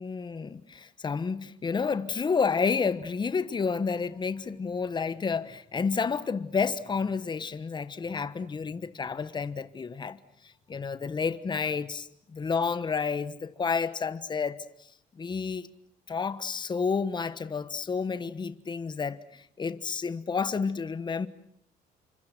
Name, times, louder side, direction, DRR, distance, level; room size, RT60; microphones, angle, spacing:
voice 1, 0.0-10.2 10.7-14.6 15.2-15.7 16.1-21.3, left 5 dB, 25° left, 1.3 m, -30 dB
29.5 x 25.0 x 6.2 m
cardioid pair, 110°, 17 cm